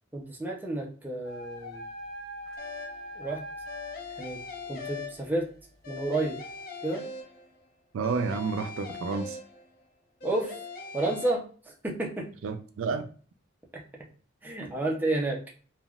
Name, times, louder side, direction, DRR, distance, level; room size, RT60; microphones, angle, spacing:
voice 1, 0.1-1.8 3.2-3.4 4.2-4.4 4.7-5.5 5.9-6.4 6.8-7.0 10.2-10.5 10.9-11.4 11.8-12.3 13.7-13.8 14.4-15.4, right 2 dB, 10° right, 0.5 m, -30 dB
sound 1, 1.2-4.0, equal, 80° left, 0.9 m, -41 dB
sound 2, 2.6-3.1 3.7-5.5 5.8-7.6 8.0-9.8 10.2-11.3, left 4 dB, 45° left, 0.7 m, -41 dB
voice 2, 7.9-9.4 12.4-13.1, right 4 dB, 75° right, 0.3 m, -30 dB
3.4 x 2.2 x 2.3 m
head